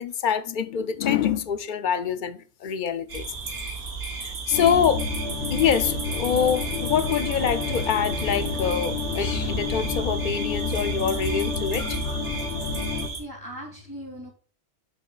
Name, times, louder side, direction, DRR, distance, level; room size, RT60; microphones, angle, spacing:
voice 1, 0.0-3.7 4.2-5.1 5.5-12.2, left 8 dB, 55° left, 0.6 m, -25 dB
sound 1, 3.1-13.2, right 4 dB, 75° right, 2.5 m, -34 dB
sound 2, 4.5-13.1, left 4 dB, 90° left, 1.2 m, -30 dB
sound 3, 4.7-12.1, left 3 dB, 10° left, 2.5 m, -39 dB
voice 2, 12.4-14.3, equal, 20° right, 2.7 m, -41 dB
7.7 x 7.0 x 2.4 m
omnidirectional pair, 1.2 m